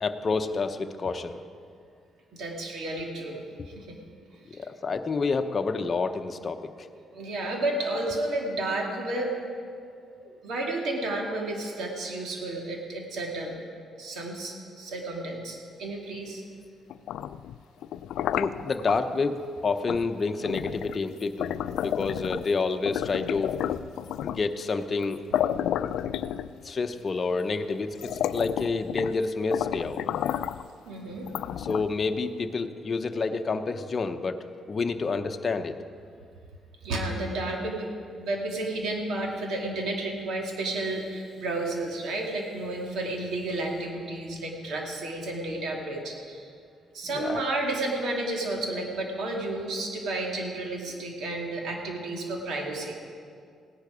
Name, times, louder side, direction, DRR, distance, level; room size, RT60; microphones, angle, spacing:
voice 1, 0.0-1.4 4.5-6.9 10.2-10.4 18.3-21.5 21.8-23.6 24.2-25.2 26.6-30.0 31.6-34.4 34.7-35.7 47.1-47.4, left 4 dB, 40° left, 6 dB, 0.8 m, -29 dB
voice 2, 2.3-4.0 7.1-9.4 10.4-13.6 14.0-16.4 30.9-31.3 36.8-37.9 38.2-46.5 46.9-52.9, right 2 dB, 75° right, 0 dB, 2.5 m, -32 dB
sound 1, 16.9-19.0 19.9-20.1 20.4-22.5 22.9-24.5 25.0-25.1 25.3-26.8 27.5-27.6 27.9-29.2 29.5-30.7 31.3-32.1, left 10 dB, 80° left, 0.3 m, -31 dB
17.0 x 10.5 x 5.0 m, 2.2 s
cardioid pair, 90°, 0 cm